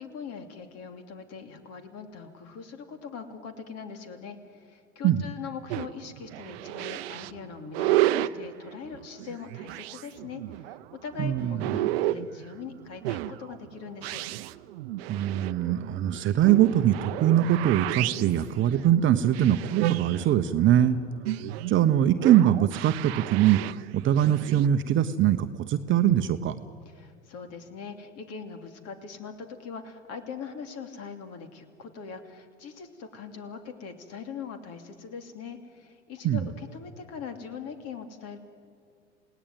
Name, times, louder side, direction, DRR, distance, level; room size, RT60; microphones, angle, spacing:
voice 1, 0.0-14.2 26.8-38.4, left 6 dB, 45° left, 7 dB, 3.0 m, -41 dB
sound 1, 5.7-24.7, right 15 dB, 60° right, 0.8 m, -32 dB
voice 2, 11.2-11.6 15.1-21.0 21.7-26.5 36.2-36.5, right 11 dB, 35° right, 10 dB, 0.9 m, -22 dB
28.5 x 18.0 x 9.3 m, 2.2 s
hypercardioid pair, 85°, 35 cm